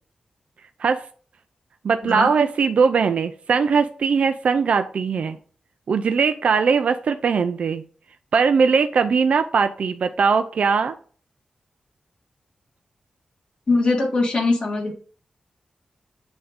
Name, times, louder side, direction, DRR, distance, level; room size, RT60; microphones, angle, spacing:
voice 1, 1.8-5.4 5.9-7.8 8.3-11.0, right 5 dB, 65° right, 8 dB, 0.4 m, -20 dB
voice 2, 13.7-14.9, left 3 dB, 45° left, -1 dB, 1.7 m, -21 dB
7.9 x 2.7 x 5.0 m, 0.43 s
wide cardioid pair, 160°, 2 cm